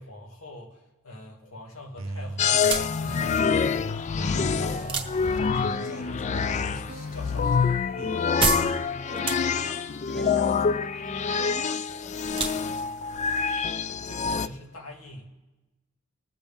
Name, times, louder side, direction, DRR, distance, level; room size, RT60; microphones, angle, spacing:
voice 1, 0.0-3.8 4.1-7.8 14.1-15.3, left 1 dB, 85° left, -1 dB, 2.3 m, -42 dB
sound 1, 2.0-10.7, right 2 dB, 70° right, 0.7 m, -42 dB
sound 2, 2.4-14.5, left 5 dB, 35° left, 0.3 m, -26 dB
sound 3, 2.5-14.5, right 5 dB, 25° right, 1.0 m, -35 dB
voice 2, 8.0-8.4 9.1-13.1, equal, ahead, 4 dB, 0.7 m, -45 dB
21.0 x 7.1 x 3.5 m, 1.1 s
head